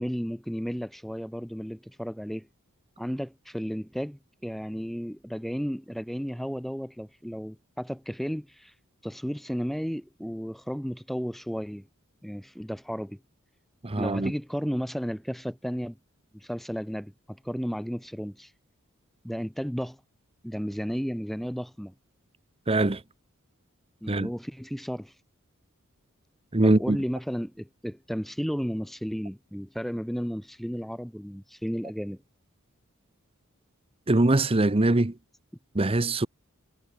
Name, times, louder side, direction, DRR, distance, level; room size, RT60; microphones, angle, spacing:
voice 1, 0.0-2.5 3.0-8.7 9.0-11.8 12.2-13.2 14.0-16.0 16.3-18.5 19.2-20.0 20.4-21.9 24.0-25.2 26.6-32.2, equal, ahead, 2.9 m, -33 dB
voice 2, 13.8-14.3 22.7-23.0 24.1-24.3 26.5-27.0 34.1-35.1 35.7-36.3, right 2 dB, 25° right, 0.8 m, -22 dB
head